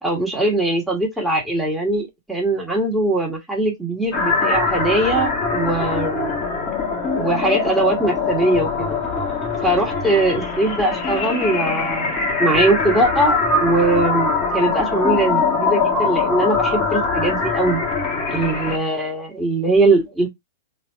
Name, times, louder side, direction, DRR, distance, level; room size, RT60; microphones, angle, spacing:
voice 1, 0.0-6.4 7.2-9.0 9.6-17.8 18.3-20.3, right 2 dB, 5° right, 2.0 m, -21 dB
sound 1, 4.1-18.8, left 4 dB, 30° left, 1.7 m, -22 dB
4.3 x 3.4 x 2.6 m
figure-of-eight pair, 100°, 0 cm